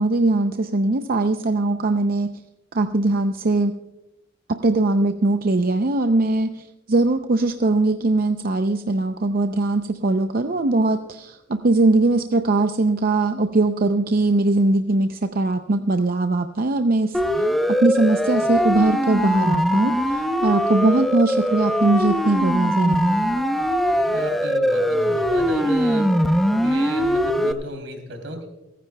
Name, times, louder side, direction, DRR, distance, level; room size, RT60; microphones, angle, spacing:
voice 1, 0.0-2.3 2.7-3.8 4.5-17.2 17.8-23.4, right 2 dB, 50° right, 7 dB, 0.6 m, -21 dB
Siren, 17.1-27.5, equal, ahead, 0.7 m, -21 dB
voice 2, 24.1-26.1 26.6-28.4, right 2 dB, 80° right, 4 dB, 3.4 m, -32 dB
30.0 x 10.0 x 2.3 m, 0.98 s
head